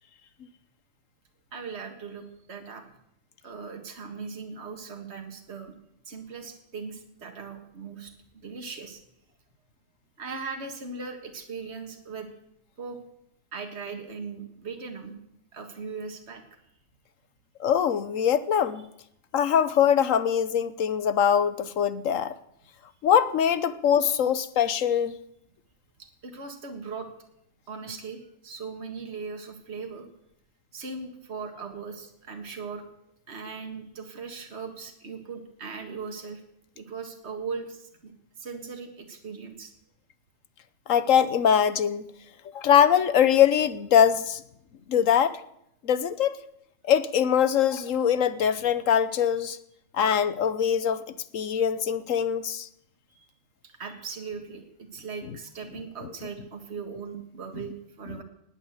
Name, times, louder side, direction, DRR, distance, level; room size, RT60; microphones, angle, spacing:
voice 1, 1.5-2.8 3.4-5.7 6.1-9.0 10.2-12.3 12.8-13.0 13.5-15.1 15.5-16.4 26.0-27.1 27.7-30.1 30.7-32.9 33.3-36.4 36.8-38.1 38.4-39.7 53.2-53.3 53.6-58.2, right 5 dB, 60° right, 4 dB, 2.0 m, -39 dB
voice 2, 17.6-18.8 19.3-22.3 23.0-25.2 40.9-42.0 42.5-44.4 44.9-45.4 45.8-46.4 46.9-49.6 49.9-51.1 51.3-52.7, left 8 dB, 85° left, 14 dB, 1.3 m, -22 dB
19.5 x 8.5 x 8.2 m, 0.78 s
omnidirectional pair, 1.3 m